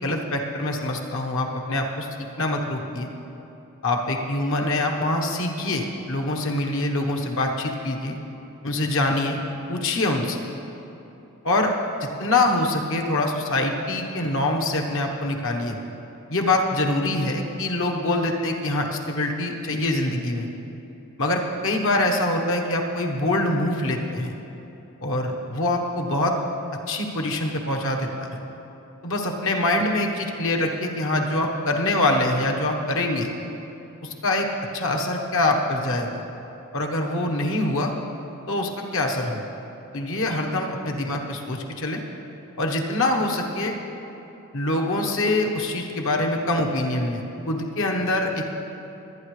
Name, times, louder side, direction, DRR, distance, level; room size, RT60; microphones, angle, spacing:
voice 1, 0.0-2.1 2.4-3.1 3.8-8.2 8.6-9.4 9.7-10.4 11.4-11.7 12.2-15.8 16.3-20.5 21.2-24.3 25.0-26.4 26.9-28.4 29.0-33.3 34.0-34.5 34.7-36.2 36.7-37.9 38.5-39.4 39.9-42.0 42.6-43.7 44.5-48.4, left 2 dB, 65° left, 2 dB, 1.2 m, -24 dB
23.0 x 9.1 x 3.3 m, 3.0 s
head